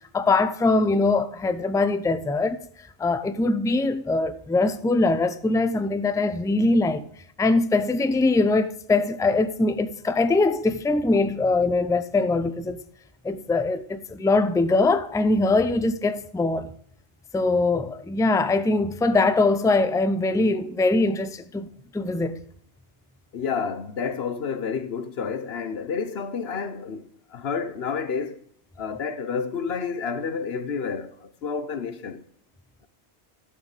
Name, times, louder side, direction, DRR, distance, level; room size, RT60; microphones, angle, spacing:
voice 1, 0.1-2.6 3.0-7.1 7.4-12.8 13.2-16.7 17.3-21.7 21.9-22.4, left 3 dB, 5° left, 0.4 m, -22 dB
voice 2, 23.3-28.4 28.8-32.2, left 6 dB, 65° left, 1.1 m, -30 dB
12.5 x 6.6 x 4.9 m
omnidirectional pair, 1.2 m